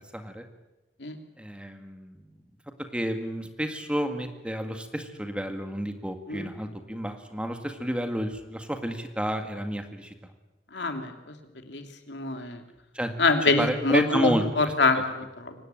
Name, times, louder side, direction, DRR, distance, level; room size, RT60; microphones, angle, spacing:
voice 1, 0.1-0.4 1.4-2.4 2.9-10.1 12.9-13.1 13.4-14.4 15.0-15.1, equal, 5° right, 5 dB, 2.0 m, -30 dB
voice 2, 10.7-11.3 11.7-12.6 13.2-15.5, left 3 dB, 70° left, 5 dB, 3.0 m, -25 dB
24.5 x 19.0 x 9.1 m, 1.0 s
head